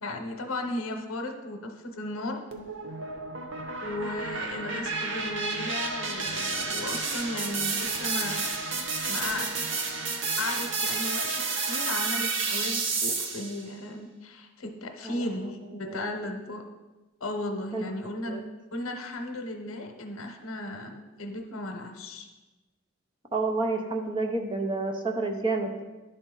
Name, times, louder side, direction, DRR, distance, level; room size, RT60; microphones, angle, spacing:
voice 1, 0.0-2.4 3.8-8.5 9.1-9.5 10.4-11.3 11.6-16.6 17.2-18.4 18.7-22.3, left 2 dB, 80° left, 4 dB, 0.8 m, -35 dB
sound 1, 2.5-13.6, right 4 dB, 60° right, 0.7 m, -31 dB
voice 2, 23.3-25.8, right 3 dB, 25° right, 4 dB, 0.6 m, -29 dB
11.0 x 4.1 x 3.8 m, 1.1 s
head